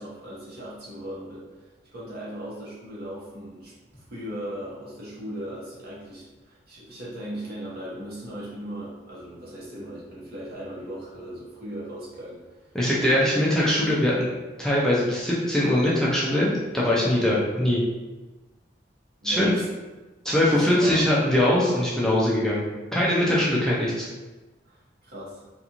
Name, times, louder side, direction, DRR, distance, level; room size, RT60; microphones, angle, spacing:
voice 1, 0.0-12.7 13.8-14.2 19.2-19.6 20.5-21.0 24.6-25.5, right 1 dB, 60° right, -7 dB, 1.0 m, -38 dB
voice 2, 12.7-14.1 14.6-17.8 19.2-19.5 20.2-22.6 22.9-24.1, left 1 dB, 5° left, -7 dB, 0.4 m, -22 dB
2.5 x 2.4 x 2.9 m, 1.2 s
head